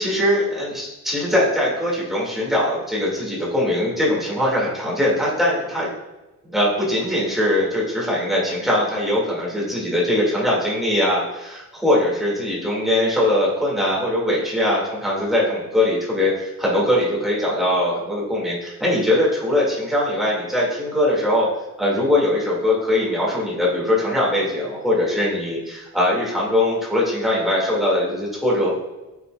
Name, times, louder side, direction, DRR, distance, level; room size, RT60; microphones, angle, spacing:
voice 1, 0.0-5.9 6.4-21.5 21.8-28.7, left 1 dB, ahead, -6 dB, 1.9 m, -21 dB
9.3 x 5.7 x 2.2 m, 1.1 s
wide cardioid pair, 170°, 34 cm